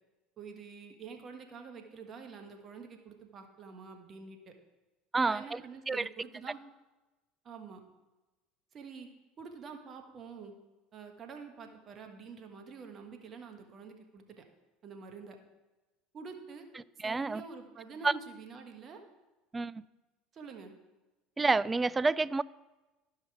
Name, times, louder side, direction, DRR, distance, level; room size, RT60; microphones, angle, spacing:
voice 1, 0.4-4.5 5.2-6.6 7.4-7.8 8.7-9.1 9.4-10.5 10.9-14.4 14.8-15.4 16.1-16.7 17.0-19.0 20.3-20.7, right 5 dB, 40° right, 1.5 m, -47 dB
voice 2, 5.1-5.6 5.9-6.0 17.0-17.4 18.0-18.1 19.5-19.8 21.4-22.4, right 3 dB, 20° right, 0.3 m, -28 dB
12.5 x 5.6 x 4.8 m
hypercardioid pair, 75°, 0 cm